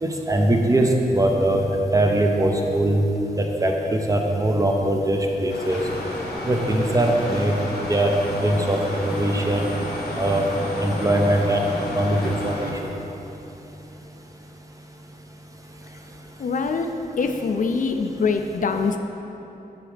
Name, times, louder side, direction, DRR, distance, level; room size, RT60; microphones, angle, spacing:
voice 1, 0.0-3.0 3.4-5.8 6.5-7.5 7.9-8.1 8.4-9.6 10.1-10.4 10.8-11.6 11.9-12.7, right 1 dB, 20° right, 2 dB, 0.6 m, -21 dB
sound 1, 5.5-12.7, left 1 dB, 90° left, 1.0 m, -33 dB
sound 2, 5.7-12.6, equal, ahead, 0.9 m, -35 dB
voice 2, 16.4-16.9 17.2-19.0, left 4 dB, 55° left, 5 dB, 0.4 m, -23 dB
8.4 x 5.2 x 3.3 m, 3.0 s
wide cardioid pair, 115°, 16 cm